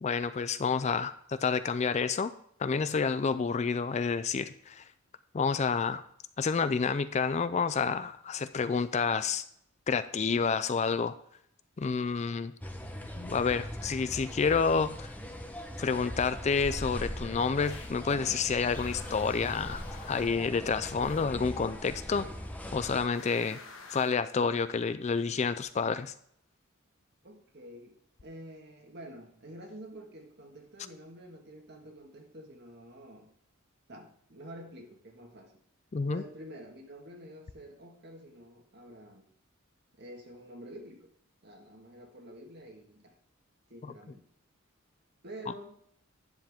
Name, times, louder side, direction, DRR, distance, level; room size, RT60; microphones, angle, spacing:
voice 1, 0.0-2.3 2.6-4.8 5.3-6.0 6.4-9.4 9.9-11.1 11.8-12.5 13.2-15.1 15.8-22.3 22.7-23.6 23.9-26.1 35.9-36.2, left 5 dB, 30° left, 13 dB, 0.3 m, -29 dB
sound 1, 12.6-23.1, equal, 5° left, 0.8 m, -40 dB
sound 2, 17.6-18.1 18.7-20.5 21.0-21.4 23.1-24.3, left 4 dB, 65° left, 1.4 m, -49 dB
voice 2, 27.2-33.3 33.9-35.6 36.1-39.2 39.9-41.1 41.4-43.2 43.7-44.2 45.2-45.8, right 1 dB, 50° right, 3 dB, 1.6 m, -48 dB
10.5 x 7.2 x 3.5 m, 0.67 s
head